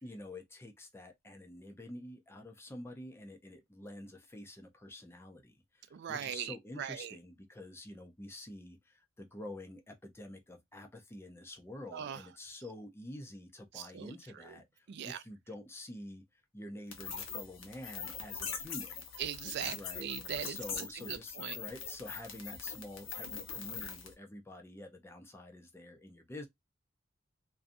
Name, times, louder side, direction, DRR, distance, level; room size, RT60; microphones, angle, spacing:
voice 1, 0.0-16.2 16.5-19.1 19.7-20.1 20.4-26.5, left 1 dB, 15° left, 0.5 m, -48 dB
voice 2, 5.9-7.2 11.9-12.2 13.7-14.1 14.5-14.6 14.9-15.2 19.2-21.6, right 9 dB, 60° right, 0.3 m, -40 dB
sound 1, 16.9-24.1, left 6 dB, 85° left, 0.8 m, -42 dB
2.5 x 2.2 x 2.5 m
head